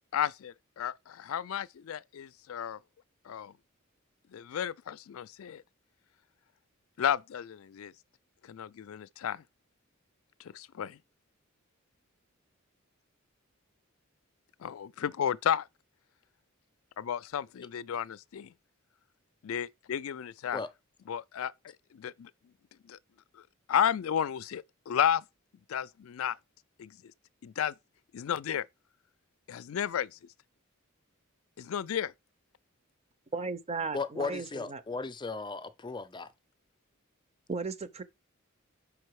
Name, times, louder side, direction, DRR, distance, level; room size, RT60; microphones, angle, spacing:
voice 1, 0.1-2.8 3.3-3.5 4.3-5.6 7.0-7.9 8.5-9.4 10.5-11.0 14.6-15.7 17.0-18.5 19.4-20.6 21.1-21.5 21.9-22.3 22.9-23.0 23.7-25.2 25.7-26.4 26.8-26.9 27.4-27.7 28.1-28.6 29.5-30.2 31.6-32.1, left 9 dB, 80° left, 0.4 m, -32 dB
voice 2, 33.3-34.8 37.5-38.0, right 4 dB, 30° right, 0.6 m, -35 dB
voice 3, 33.9-36.3, left 4 dB, 20° left, 0.5 m, -36 dB
5.4 x 4.8 x 4.7 m
head